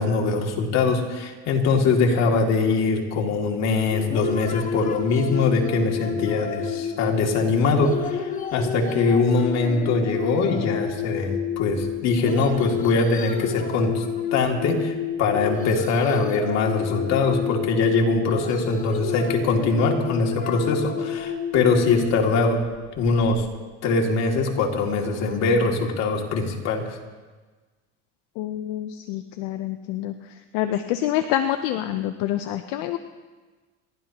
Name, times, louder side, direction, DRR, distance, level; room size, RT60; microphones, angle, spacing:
voice 1, 0.0-14.0 14.3-22.6 23.0-23.5 23.8-26.9, left 3 dB, 50° left, 1 dB, 2.6 m, -22 dB
sound 1, 3.9-23.4, left 7 dB, 25° left, 1.2 m, -30 dB
voice 2, 28.4-30.1 30.5-33.0, left 12 dB, 70° left, 7 dB, 0.9 m, -26 dB
30.0 x 12.0 x 3.0 m, 1.3 s
supercardioid pair, 135°, 35 cm